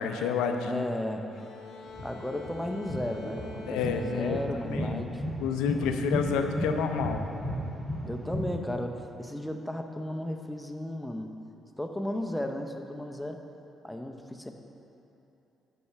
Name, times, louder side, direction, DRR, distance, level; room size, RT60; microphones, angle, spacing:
voice 1, 0.0-0.8 3.7-4.4 4.7-5.1 5.4-7.2, left 6 dB, 90° left, 6 dB, 0.5 m, -29 dB
voice 2, 0.7-1.3 2.0-5.2 8.1-11.3 11.8-13.4 13.8-14.5, left 1 dB, 5° left, 4 dB, 0.6 m, -34 dB
sound 1, 1.3-5.8, left 2 dB, 70° left, 0.8 m, -46 dB
sound 2, 1.8-8.4, equal, 25° right, 1.4 m, -34 dB
5.7 x 5.4 x 6.6 m, 2.9 s
supercardioid pair, 70°, 0 cm